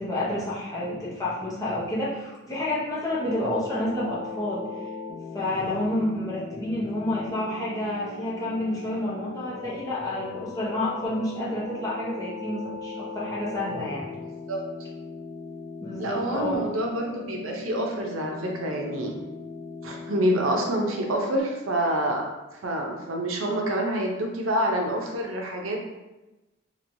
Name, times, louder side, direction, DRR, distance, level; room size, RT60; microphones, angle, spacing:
voice 1, 0.0-4.7 5.3-14.1 15.8-16.6, left 1 dB, 15° left, -7 dB, 0.8 m, -29 dB
sound 1, 3.1-21.4, left 3 dB, 85° left, 0.5 m, -39 dB
voice 2, 16.0-19.1 19.8-22.3 22.6-25.8, right 1 dB, 85° right, 1 dB, 0.6 m, -27 dB
3.0 x 2.9 x 2.6 m, 1.0 s
head